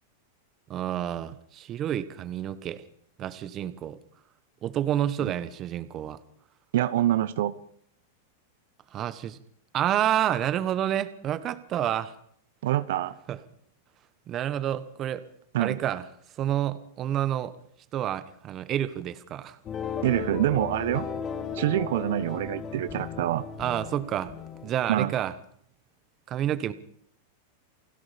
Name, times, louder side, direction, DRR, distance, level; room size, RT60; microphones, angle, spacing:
voice 1, 0.7-2.8 3.2-4.0 4.6-6.2 8.9-9.4 9.7-12.1 13.3-13.4 14.3-15.2 15.6-16.0 16.4-17.5 17.9-19.6 23.6-24.3 24.6-25.3 26.3-26.7, right 11 dB, 30° right, 14 dB, 1.4 m, -29 dB
voice 2, 6.7-7.6 12.6-13.2 15.5-15.8 20.0-21.1 21.5-23.4 24.9-25.1, right 13 dB, 70° right, 15 dB, 1.2 m, -26 dB
sound 1, 19.6-24.7, left 6 dB, 25° left, 2.2 m, -36 dB
29.5 x 18.0 x 5.3 m, 0.65 s
supercardioid pair, 150°, 0 cm